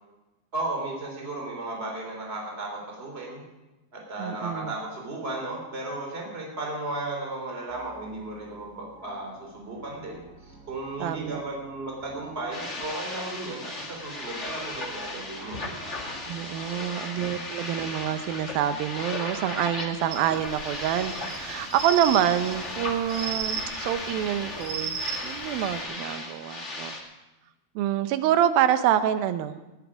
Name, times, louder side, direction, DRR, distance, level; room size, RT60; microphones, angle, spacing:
voice 1, 0.5-3.4 3.9-16.0 16.7-17.4, right 2 dB, 15° right, 0 dB, 3.3 m, -35 dB
voice 2, 4.2-4.7 11.0-11.4 16.3-25.0 25.2-27.0 27.8-29.6, right 10 dB, 85° right, 11 dB, 2.6 m, -26 dB
sound 1, 7.7-26.0, right 1 dB, 5° left, 2.7 m, -52 dB
sound 2, 12.5-27.0, left 2 dB, 35° left, 1.1 m, -36 dB
sound 3, 20.1-25.8, right 6 dB, 60° right, 2.9 m, -35 dB
19.5 x 10.5 x 5.0 m, 1.1 s
omnidirectional pair, 4.2 m